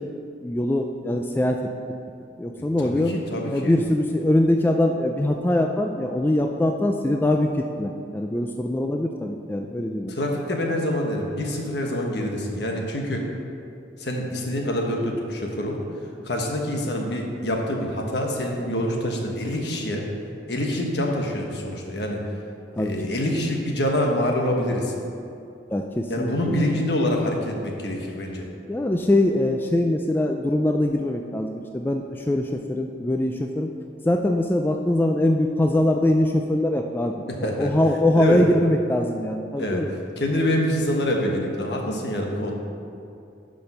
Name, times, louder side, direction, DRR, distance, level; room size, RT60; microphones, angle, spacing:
voice 1, 0.0-1.6 2.4-3.1 3.5-10.1 22.8-22.9 25.7-26.8 28.7-33.7 34.0-37.1 37.4-39.9, left 1 dB, 10° left, 3 dB, 0.3 m, -23 dB
voice 2, 2.6-3.8 10.1-13.3 14.0-15.8 16.2-20.0 20.5-22.2 22.8-24.9 26.1-28.5 37.3-37.7 38.2-38.4 39.6-42.5, left 1 dB, 65° left, 1 dB, 1.3 m, -26 dB
10.5 x 5.1 x 5.4 m, 2.6 s
head